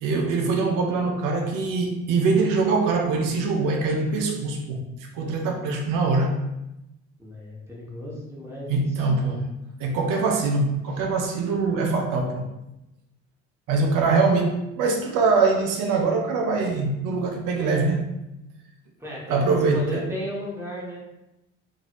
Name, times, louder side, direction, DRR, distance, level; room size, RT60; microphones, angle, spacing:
voice 1, 0.0-4.8 5.1-6.4 8.7-9.5 9.8-12.5 13.7-18.0 19.3-20.0, right 3 dB, 60° right, 2 dB, 0.7 m, -23 dB
voice 2, 7.2-9.0 19.0-21.0, left 1 dB, 5° right, -5 dB, 1.2 m, -35 dB
3.0 x 2.7 x 2.5 m, 0.91 s
hypercardioid pair, 55°, 36 cm